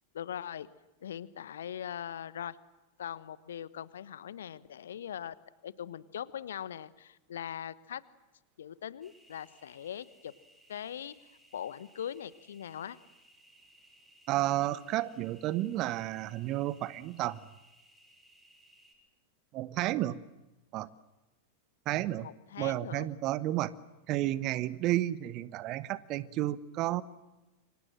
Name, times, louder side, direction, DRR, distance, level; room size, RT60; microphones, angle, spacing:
voice 1, 0.1-0.7 1.0-2.6 3.0-5.4 5.6-8.0 8.6-10.3 10.7-11.1 11.5-13.0 22.2-23.1, left 9 dB, 65° left, 18 dB, 1.0 m, -41 dB
sound 1, 9.0-18.9, right 1 dB, 10° right, 7.9 m, -62 dB
voice 2, 14.3-17.4 19.5-20.2 20.7-20.9 21.9-22.3 22.6-23.7 24.1-27.0, right 15 dB, 40° right, 18 dB, 1.0 m, -31 dB
29.0 x 25.0 x 7.7 m, 1.0 s
figure-of-eight pair, 90°, 0 cm